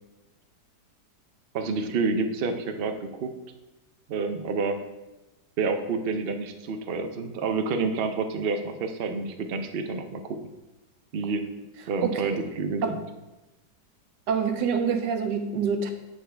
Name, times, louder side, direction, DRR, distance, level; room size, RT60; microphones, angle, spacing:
voice 1, 1.5-3.3 4.1-4.8 5.6-10.4 11.1-11.5 11.9-13.0, right 4 dB, 60° right, 6 dB, 0.6 m, -28 dB
voice 2, 12.0-12.4 12.8-12.9 14.3-15.9, right 6 dB, 85° right, 7 dB, 1.4 m, -26 dB
7.9 x 7.4 x 3.4 m, 1.0 s
omnidirectional pair, 1.9 m